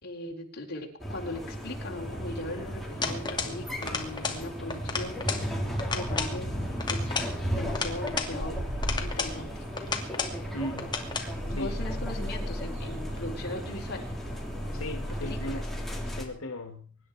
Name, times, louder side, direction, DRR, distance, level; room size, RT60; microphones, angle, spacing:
voice 1, 0.0-5.4 5.9-6.5 6.9-7.1 7.5-8.6 9.0-9.6 11.5-14.1 15.2-15.7 16.1-16.2, left 1 dB, 50° left, 4.1 m, -39 dB
sound 1, 1.0-16.2, equal, ahead, 3.3 m, -35 dB
sound 2, 1.9-15.5, equal, 60° right, 5.5 m, -40 dB
sound 3, 3.0-3.6 3.8-4.4 4.7-5.5 5.8-6.4 6.8-8.3 8.8-9.4 9.8-10.4 10.8-11.3, left 4 dB, 20° left, 2.5 m, -32 dB
voice 2, 10.5-11.0 11.5-11.7 14.7-15.6 16.1-17.0, equal, 85° left, 2.0 m, -37 dB
24.5 x 11.0 x 4.8 m
head